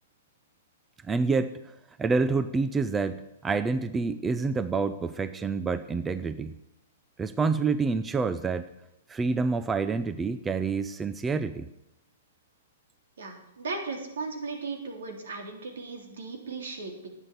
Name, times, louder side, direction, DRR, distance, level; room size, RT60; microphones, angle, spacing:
voice 1, 1.1-1.7 2.0-6.5 7.2-8.7 9.1-11.7, right 4 dB, 15° right, 12 dB, 0.5 m, -27 dB
voice 2, 13.2-17.1, right 4 dB, 80° right, 3 dB, 3.2 m, -36 dB
11.0 x 9.1 x 8.2 m, 0.87 s
hypercardioid pair, 135°, 0 cm